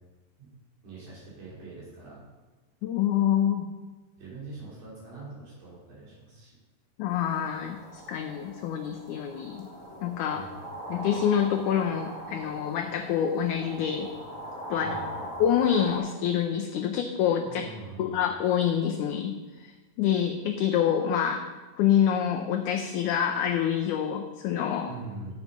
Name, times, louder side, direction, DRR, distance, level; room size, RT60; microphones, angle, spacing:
voice 1, 0.8-2.2 4.2-6.6 10.3-10.4 14.8-15.2 17.4-18.1 24.9-25.4, right 3 dB, 65° right, -7 dB, 4.6 m, -43 dB
voice 2, 2.8-3.7 7.0-9.7 10.0-10.5 10.9-14.1 14.7-15.0 15.4-17.6 18.0-19.7 20.0-21.5 21.8-24.9, left 9 dB, 75° left, 4 dB, 1.9 m, -26 dB
sound 1, 7.1-16.0, right 1 dB, 5° right, 3.3 m, -41 dB
12.0 x 7.4 x 5.3 m, 1.2 s
omnidirectional pair, 4.1 m